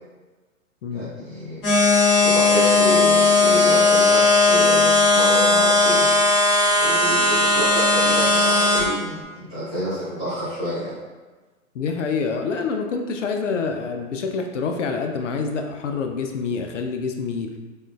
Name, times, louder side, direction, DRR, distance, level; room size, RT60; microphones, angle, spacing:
voice 1, 0.9-1.6 2.2-6.1 6.8-10.9, equal, ahead, -21 dB, 0.3 m, -29 dB
sound 1, 1.6-8.8, left 2 dB, 30° left, 1.2 m, -17 dB
voice 2, 11.7-17.5, left 5 dB, 65° left, 4 dB, 0.5 m, -26 dB
3.5 x 2.5 x 2.3 m, 1.3 s
figure-of-eight pair, 125°, 40 cm